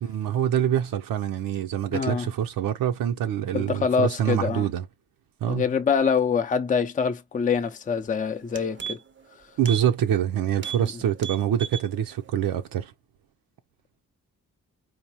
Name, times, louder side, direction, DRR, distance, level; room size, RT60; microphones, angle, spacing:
voice 1, 0.0-4.9 5.4-5.7 9.6-12.9, right 10 dB, 85° right, 0.6 m, -25 dB
voice 2, 1.9-2.3 3.5-4.6 5.5-9.0, left 6 dB, 25° left, 0.5 m, -25 dB
sound 1, 7.9-8.1 8.4-9.2 9.6-9.9 10.2-10.3 10.6-10.9 11.2-11.9 12.3-12.4, right 8 dB, 35° right, 0.5 m, -36 dB
4.6 x 2.0 x 2.8 m
cardioid pair, 80°, 33 cm